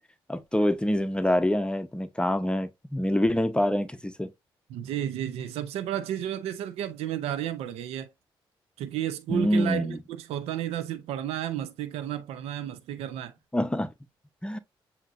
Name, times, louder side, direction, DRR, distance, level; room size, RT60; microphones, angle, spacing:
voice 1, 0.3-4.3 9.3-10.0 13.5-13.9 14.4-14.6, left 1 dB, 10° left, 0.7 m, -26 dB
voice 2, 4.7-8.1 8.8-13.3, right 11 dB, 85° right, 0.5 m, -32 dB
7.4 x 2.8 x 2.5 m
supercardioid pair, 55°, 10 cm